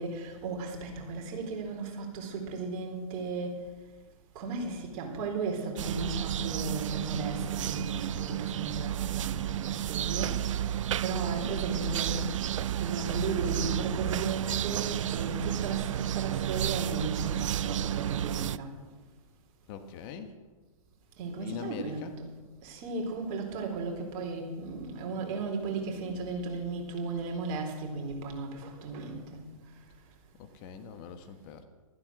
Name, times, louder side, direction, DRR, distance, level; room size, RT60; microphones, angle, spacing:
voice 1, 0.0-3.6 4.3-10.5 11.0-12.2 12.8-18.7 21.2-22.3 22.6-29.4, right 3 dB, 40° right, 2 dB, 4.1 m, -35 dB
sound 1, 5.8-18.6, right 11 dB, 60° right, 0.5 m, -31 dB
voice 2, 19.7-20.3 21.4-22.2 30.4-31.6, left 7 dB, 40° left, 7 dB, 1.5 m, -42 dB
15.0 x 13.5 x 6.3 m, 1.3 s
figure-of-eight pair, 110°, 18 cm